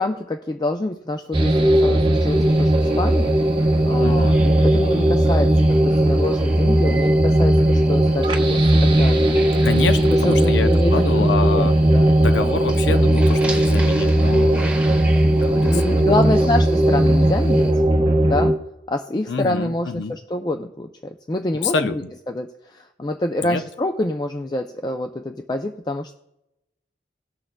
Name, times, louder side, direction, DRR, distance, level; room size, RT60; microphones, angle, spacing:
voice 1, 0.0-3.4 3.9-9.4 10.1-12.1 15.5-17.8 18.3-18.6 18.9-21.9 22.3-26.1, left 1 dB, 25° left, 5 dB, 0.3 m, -26 dB
sound 1, 1.3-18.5, right 1 dB, 30° right, 0.8 m, -17 dB
sound 2, 2.1-17.7, right 2 dB, 10° right, 1.3 m, -38 dB
voice 2, 4.0-4.4 9.6-11.7 12.2-14.6 15.3-16.1 19.3-20.2 21.6-22.1 23.4-23.6, left 4 dB, 90° left, 10 dB, 0.5 m, -27 dB
18.5 x 6.3 x 2.2 m, 0.87 s
head